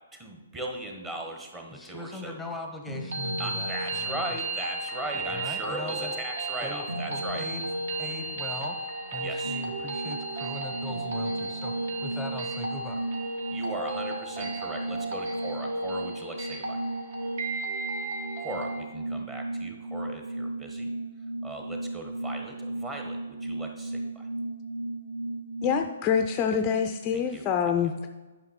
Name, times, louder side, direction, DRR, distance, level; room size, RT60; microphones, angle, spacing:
voice 1, 0.1-2.4 3.4-7.5 9.2-9.6 13.5-16.8 18.4-20.9 21.4-24.3 27.1-27.5, right 1 dB, 15° right, 2 dB, 1.3 m, -38 dB
voice 2, 1.7-4.2 5.1-6.1 6.6-7.7 8.0-13.0, left 2 dB, 5° left, 3 dB, 0.9 m, -40 dB
sound 1, 2.9-18.8, right 2 dB, 50° right, 1.3 m, -34 dB
sound 2, 9.4-25.9, right 2 dB, 90° left, 0.4 m, -36 dB
voice 3, 25.6-28.1, left 7 dB, 25° left, 6 dB, 0.4 m, -26 dB
9.5 x 5.7 x 4.2 m, 1.2 s
figure-of-eight pair, 125°, 0 cm